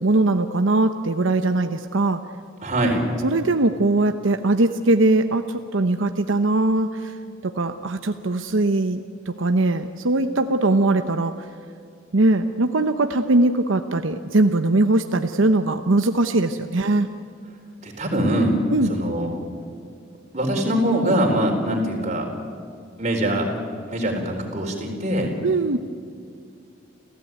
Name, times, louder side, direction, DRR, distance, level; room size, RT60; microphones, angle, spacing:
voice 1, 0.0-2.2 3.2-7.1 7.4-9.0 9.3-11.3 12.1-17.1 18.7-18.9 25.4-25.8, right 2 dB, 80° right, 7 dB, 0.9 m, -20 dB
voice 2, 2.6-3.0 17.8-18.6 18.8-19.3 20.3-22.3 23.0-23.5 23.9-25.3, right 1 dB, 35° right, 1 dB, 4.3 m, -22 dB
29.5 x 15.0 x 9.3 m, 2.3 s
head